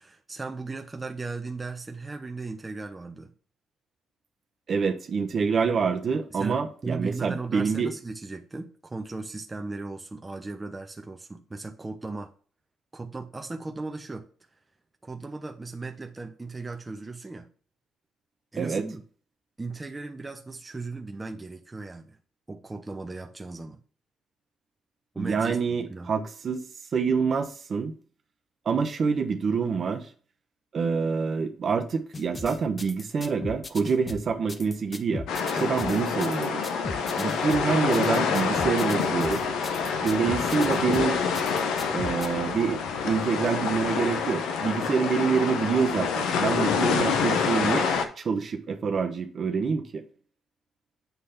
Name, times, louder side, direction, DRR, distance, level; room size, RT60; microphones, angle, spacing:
voice 1, 0.0-3.3 6.3-12.3 12.9-14.3 15.0-17.5 18.5-19.0 19.6-22.2 22.5-23.8 25.1-25.6 25.9-26.1, right 3 dB, 20° right, 0.8 m, -37 dB
voice 2, 4.7-7.9 18.6-18.8 25.2-26.6 26.9-27.9 28.6-30.1 30.7-35.3 35.5-36.6 37.2-39.4 40.0-41.2 41.9-42.8 43.0-47.9 48.2-50.0, right 5 dB, 50° right, 1.0 m, -26 dB
sound 1, 32.1-42.3, left 3 dB, 30° left, 0.7 m, -38 dB
sound 2, 35.3-48.0, left 6 dB, 85° left, 0.9 m, -27 dB
8.1 x 3.4 x 5.7 m
cardioid pair, 90°, 0 cm